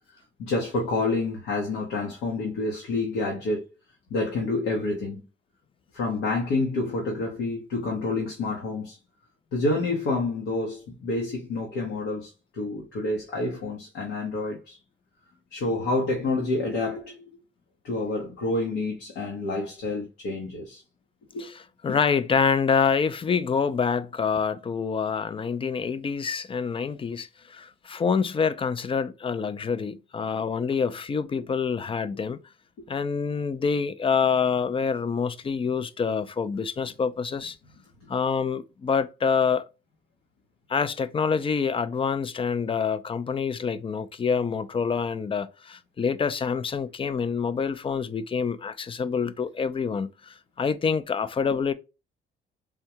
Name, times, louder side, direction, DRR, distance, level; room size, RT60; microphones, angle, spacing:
voice 1, 0.4-3.6 4.1-5.2 5.9-9.0 9.5-14.8 15.5-17.2 17.8-20.8 21.3-21.5 32.8-32.9, left 2 dB, 90° left, 0.9 m, -28 dB
voice 2, 21.8-32.4 32.9-37.6 38.1-39.6 40.7-51.7, left 6 dB, 25° left, 0.4 m, -26 dB
3.6 x 2.2 x 2.7 m
cardioid pair, 90°, 20 cm